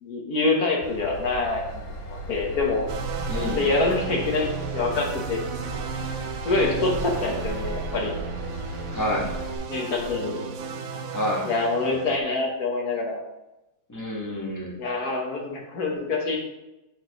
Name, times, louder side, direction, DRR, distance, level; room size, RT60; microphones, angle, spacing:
voice 1, 0.0-2.9 3.5-5.4 6.4-8.1 9.7-10.4 11.4-13.2 14.8-16.4, left 3 dB, 55° left, 0 dB, 1.5 m, -26 dB
Train / Engine, 0.8-9.5, right 1 dB, 70° left, 1.6 m, -35 dB
sound 1, 2.9-12.2, right 6 dB, 85° right, 0.7 m, -34 dB
voice 2, 3.3-3.7 8.9-9.3 11.1-11.5 13.9-14.9, left 1 dB, 10° left, -3 dB, 0.9 m, -28 dB
8.6 x 5.2 x 3.0 m, 0.96 s
omnidirectional pair, 2.2 m